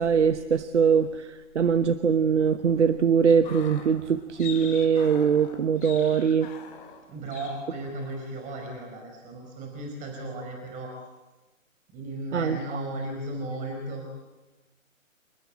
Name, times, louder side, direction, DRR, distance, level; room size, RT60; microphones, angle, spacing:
voice 1, 0.0-6.5 12.3-12.8, right 6 dB, 60° right, 12 dB, 1.2 m, -22 dB
sound 1, 3.3-7.1 7.3-7.7 8.0-8.2, left 8 dB, 40° left, 3.4 m, -43 dB
voice 2, 7.1-10.9 11.9-14.0, right 1 dB, 20° right, 2 dB, 4.8 m, -35 dB
28.5 x 20.0 x 8.9 m, 1.1 s
figure-of-eight pair, 130°, 40 cm